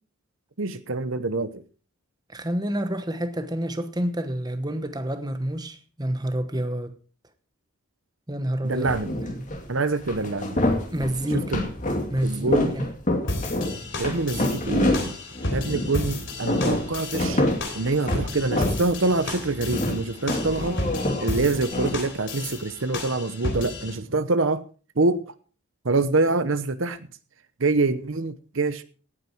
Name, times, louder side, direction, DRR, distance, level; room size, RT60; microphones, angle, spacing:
voice 1, 0.6-1.6 8.6-9.1 9.7-10.6 11.3-11.7 12.2-12.7 14.0-15.2 15.5-17.4 17.7-20.8 21.2-24.6 25.0-25.3 25.8-27.0 27.6-28.8, right 3 dB, 60° right, 0.9 m, -25 dB
voice 2, 2.3-7.0 8.3-8.9 9.2-9.5 10.9-11.5 12.1-12.9, right 1 dB, 20° right, 1.1 m, -28 dB
sound 1, 8.9-9.6 10.0-16.0 16.3-18.9 19.2-21.9, left 1 dB, 35° left, 2.5 m, -27 dB
sound 2, 13.3-23.9, left 2 dB, 55° left, 3.7 m, -33 dB
17.0 x 9.0 x 4.5 m
head